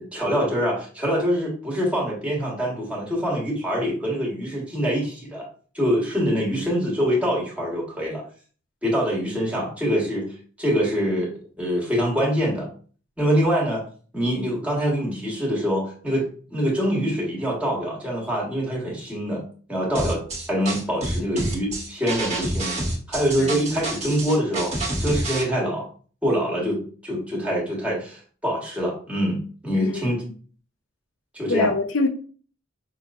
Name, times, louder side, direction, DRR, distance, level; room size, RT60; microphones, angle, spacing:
voice 1, 0.0-5.5 5.7-8.2 8.8-10.3 10.6-12.7 13.2-13.8 14.1-19.4 19.7-22.7 23.1-24.7 25.0-25.9 26.2-30.2 31.3-31.7, equal, 5° right, 1.5 m, -25 dB
sound 1, 19.9-25.4, right 1 dB, 35° right, 1.3 m, -28 dB
voice 2, 29.7-30.1 31.5-32.1, left 3 dB, 65° left, 0.5 m, -24 dB
5.8 x 3.0 x 2.5 m
head